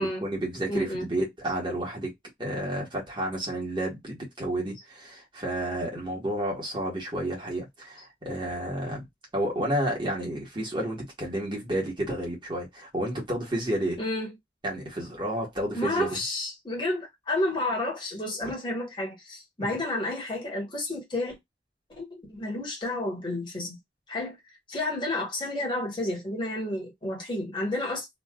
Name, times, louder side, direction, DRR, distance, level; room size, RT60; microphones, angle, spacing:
voice 1, 0.0-2.1 2.4-9.0 9.3-14.0 14.6-16.2 19.6-19.8, right 1 dB, 25° right, 1.5 m, -31 dB
voice 2, 0.7-1.1 14.0-14.3 15.7-21.4 21.9-23.8 24.1-24.4 24.7-28.1, left 1 dB, 25° left, 1.4 m, -31 dB
3.2 x 2.7 x 2.3 m
head